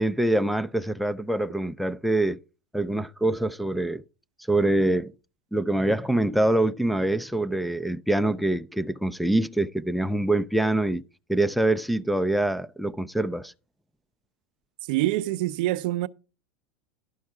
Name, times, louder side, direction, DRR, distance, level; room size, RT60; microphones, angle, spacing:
voice 1, 0.0-2.4 2.7-4.0 4.5-5.1 5.5-11.0 11.3-13.5, right 1 dB, ahead, 0.4 m, -25 dB
voice 2, 14.9-16.1, right 16 dB, 70° right, 0.5 m, -25 dB
11.5 x 5.4 x 4.7 m
supercardioid pair, 120°, 5 cm